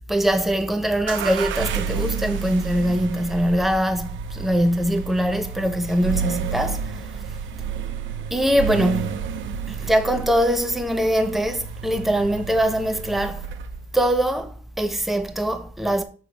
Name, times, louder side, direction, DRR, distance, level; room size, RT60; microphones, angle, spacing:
voice 1, 0.1-7.2 8.3-9.2 9.7-13.5 13.9-16.0, equal, ahead, 0.7 m, -22 dB
sound 1, 1.1-13.9, right 7 dB, 75° right, 0.6 m, -31 dB
6.0 x 3.4 x 4.9 m
cardioid pair, 90°, 20 cm